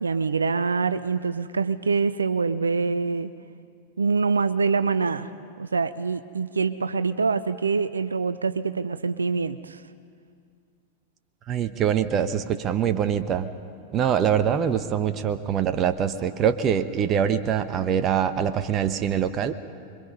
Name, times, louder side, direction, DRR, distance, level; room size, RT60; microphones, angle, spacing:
voice 1, 0.0-3.3 4.0-5.3 5.6-9.8, right 4 dB, 75° right, 13 dB, 0.6 m, -25 dB
voice 2, 11.5-13.5 13.9-19.5, right 8 dB, 30° right, 11 dB, 1.0 m, -24 dB
26.0 x 23.0 x 5.5 m, 2.2 s
figure-of-eight pair, 90°, 0 cm